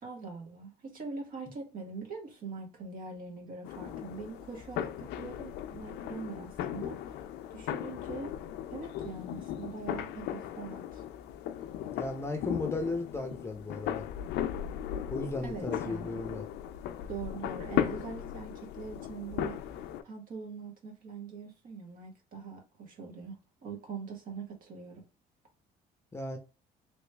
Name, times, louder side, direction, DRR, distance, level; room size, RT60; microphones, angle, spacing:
voice 1, 0.0-7.2 7.5-8.4 8.7-11.0 15.4-16.2 17.1-19.6 20.0-25.0, right 4 dB, 55° right, 1.4 m, -43 dB
sound 1, 3.6-20.0, left 11 dB, 85° left, 0.4 m, -37 dB
voice 2, 12.0-14.0 15.1-16.5 26.1-26.4, left 2 dB, 15° left, 0.6 m, -35 dB
3.1 x 2.9 x 3.4 m
cardioid pair, 110°, 17 cm